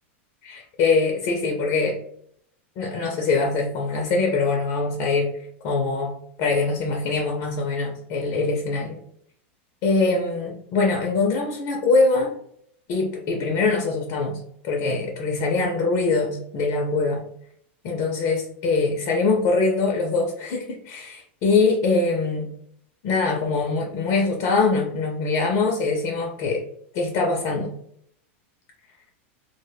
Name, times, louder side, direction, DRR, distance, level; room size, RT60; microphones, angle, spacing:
voice 1, 0.4-2.0 2.8-9.0 9.8-12.4 12.9-17.3 17.8-22.5 23.0-26.6 26.9-27.7, left 3 dB, 45° left, 0 dB, 0.5 m, -23 dB
2.1 x 2.1 x 3.2 m, 0.69 s
supercardioid pair, 140°, 7 cm